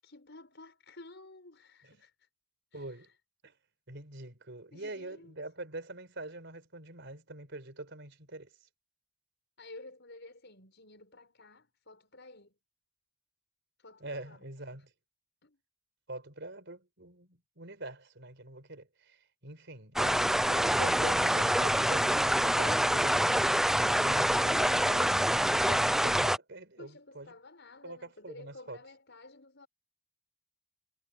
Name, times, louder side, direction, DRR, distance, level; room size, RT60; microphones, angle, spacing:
voice 1, 0.0-2.3 2.7-3.2 4.7-5.3 9.6-12.6 13.8-14.8 15.4-15.6 26.8-29.7, left 2 dB, 60° left, 6.6 m, -52 dB
voice 2, 2.7-3.1 3.4-3.5 3.9-8.5 14.0-14.9 16.1-27.3 27.8-28.8, right 2 dB, 60° right, 4.7 m, -44 dB
sound 1, 20.0-26.4, equal, ahead, 0.5 m, -26 dB
head